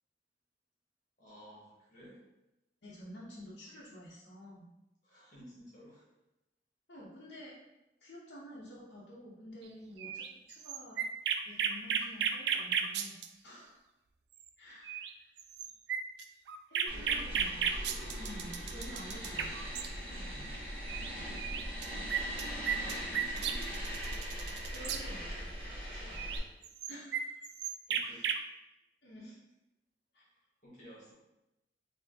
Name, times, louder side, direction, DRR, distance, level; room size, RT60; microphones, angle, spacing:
voice 1, 1.2-2.2 5.0-6.0 16.9-17.3 20.1-20.7 22.7-23.7 27.9-28.4 30.2-30.3 30.6-31.1, equal, 45° left, -7 dB, 1.5 m, -53 dB
voice 2, 2.8-4.6 6.9-7.6 8.0-11.0 11.4-13.2 13.4-13.8 14.6-15.3 16.7-17.6 18.1-19.6 24.7-25.5 25.9-26.2 26.9-27.4 28.0-28.3 29.0-29.3 30.1-30.2, equal, 70° left, -9 dB, 0.8 m, -50 dB
sound 1, 10.0-13.3 14.5-14.6 14.8-15.1 15.4-19.9 20.9-21.1 21.3-25.0 26.1-28.4, right 7 dB, 75° right, 0.3 m, -34 dB
sound 2, 16.9-26.4, equal, 30° right, 1.4 m, -40 dB
4.5 x 2.8 x 2.7 m, 0.94 s
head